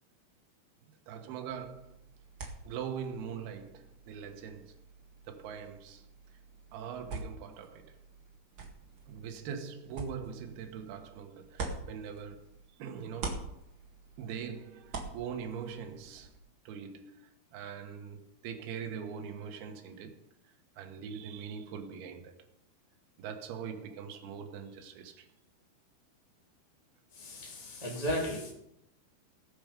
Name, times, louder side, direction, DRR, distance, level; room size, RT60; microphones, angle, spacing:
voice 1, 0.9-2.0 2.6-4.8 5.3-6.1 6.7-8.0 9.1-12.5 12.8-13.5 14.2-16.3 16.7-22.4 23.2-25.3, right 7 dB, 75° right, 3.1 m, -42 dB
sound 1, 1.5-12.7 13.0-16.4, right 3 dB, 45° right, 1.6 m, -46 dB
voice 2, 27.1-28.5, equal, 15° right, 1.5 m, -35 dB
19.5 x 6.5 x 5.2 m
omnidirectional pair, 4.6 m